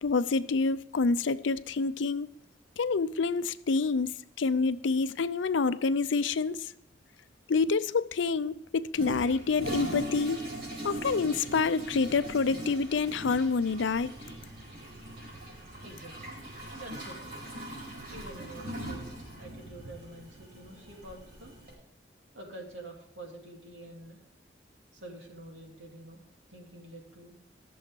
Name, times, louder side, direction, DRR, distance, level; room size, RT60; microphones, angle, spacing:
voice 1, 0.0-2.3 2.8-6.7 7.5-10.5 10.8-14.2, left 4 dB, 85° left, 0.5 m, -27 dB
Toilet flush, 8.9-21.7, right 1 dB, 50° right, 4.7 m, -40 dB
voice 2, 15.8-16.4 16.7-17.4 18.1-21.6 22.3-24.2 24.9-26.2 26.5-27.3, right 1 dB, 85° right, 2.8 m, -47 dB
14.0 x 7.1 x 5.3 m
head